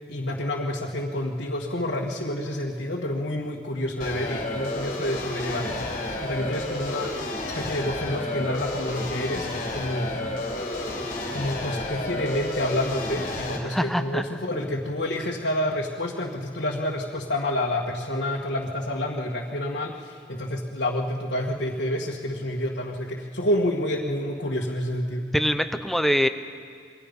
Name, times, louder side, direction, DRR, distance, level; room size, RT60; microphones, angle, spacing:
voice 1, 0.1-7.1 7.6-10.1 11.3-25.3, left 1 dB, 75° left, -3 dB, 1.9 m, -28 dB
sound 1, 4.0-13.6, left 2 dB, 45° left, 3.2 m, -31 dB
voice 2, 13.6-14.2 25.3-26.3, equal, ahead, 9 dB, 0.7 m, -23 dB
28.0 x 22.5 x 5.5 m, 2.2 s
head